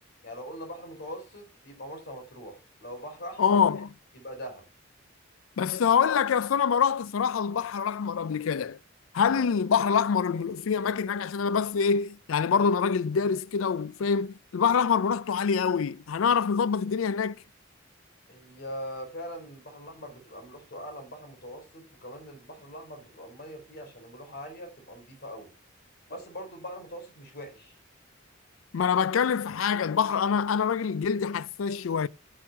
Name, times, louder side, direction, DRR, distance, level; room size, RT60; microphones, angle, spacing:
voice 1, 0.2-3.6 4.1-4.6 9.2-9.5 18.3-25.5 26.1-27.8, equal, 55° left, 4.0 m, -42 dB
voice 2, 3.4-3.9 5.6-8.8 9.1-17.4 28.7-32.1, left 6 dB, 85° left, 0.4 m, -25 dB
10.5 x 6.3 x 5.7 m
head